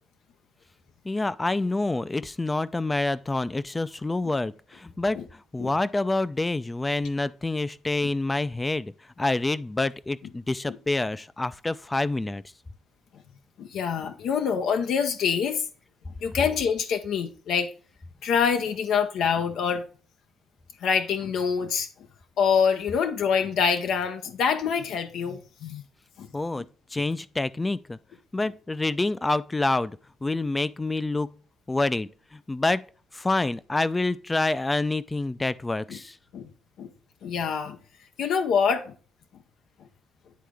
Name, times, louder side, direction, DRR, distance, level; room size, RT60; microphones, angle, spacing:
voice 1, 1.1-4.5 4.8-5.2 5.5-8.9 9.2-12.4 26.3-26.6 26.9-28.0 28.3-29.9 30.2-31.3 31.7-32.1 32.5-32.8 33.1-36.1, left 2 dB, 20° left, 0.4 m, -27 dB
voice 2, 13.6-15.6 16.2-17.7 18.2-19.8 20.8-21.9 22.4-25.8 26.2-26.3 26.6-26.7 35.9-36.0 36.3-36.5 36.8-36.9 37.2-37.8 38.2-38.9, left 6 dB, 75° left, 0.6 m, -25 dB
9.4 x 3.7 x 3.4 m
cardioid pair, 90°, 0 cm